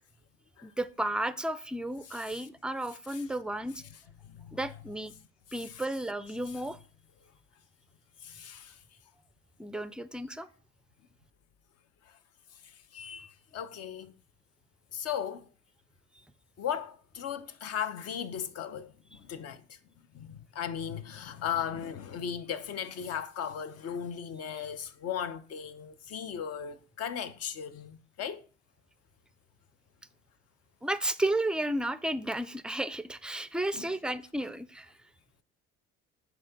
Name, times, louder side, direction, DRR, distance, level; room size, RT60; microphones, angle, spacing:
voice 1, 0.6-3.8 4.5-5.1 5.5-6.8 9.6-10.5 19.1-19.2 30.8-34.9, right 1 dB, 5° right, 0.4 m, -33 dB
voice 2, 2.1-2.4 4.3-4.6 5.6-5.8 8.2-8.8 12.9-14.1 14.9-15.5 16.6-19.6 20.1-28.4 33.7-33.9, left 8 dB, 55° left, 0.8 m, -37 dB
7.7 x 2.9 x 5.7 m
supercardioid pair, 85°, 29 cm